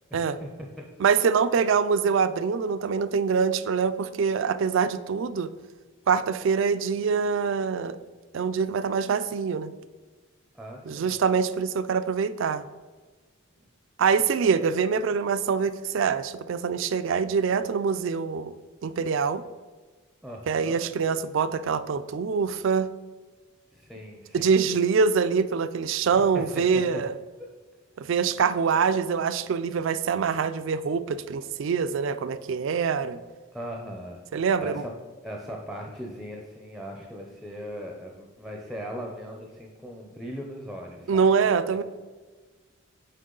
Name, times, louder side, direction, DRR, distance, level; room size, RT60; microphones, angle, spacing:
voice 1, 0.1-0.5 10.5-11.1 14.6-14.7 20.2-20.8 23.7-24.9 26.1-26.8 27.4-27.5 28.0-28.2 33.5-34.2 34.6-34.9 35.2-41.8, equal, ahead, 0 dB, 0.5 m, -39 dB
voice 2, 1.0-5.5 6.1-8.0 8.3-9.7 10.9-12.6 14.0-18.5 18.8-19.4 20.5-22.9 24.3-27.1 28.0-33.2 34.3-34.8 41.1-41.8, right 6 dB, 60° right, 13 dB, 0.3 m, -24 dB
6.5 x 4.5 x 3.8 m, 1.3 s
head